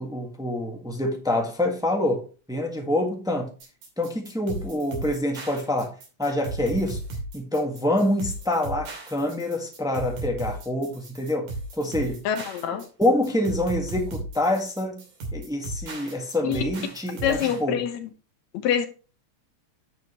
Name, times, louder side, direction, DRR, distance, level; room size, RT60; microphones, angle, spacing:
voice 1, 0.0-3.5 4.0-7.0 7.3-11.5 11.8-12.2 13.0-15.0 15.3-17.8, left 1 dB, 5° right, 0.5 m, -26 dB
sound 1, 3.6-17.6, right 2 dB, 90° right, 4.1 m, -35 dB
voice 2, 12.2-12.8 16.4-16.6 17.2-18.1 18.5-18.9, left 9 dB, 70° left, 2.4 m, -25 dB
10.5 x 6.5 x 3.0 m
omnidirectional pair, 3.3 m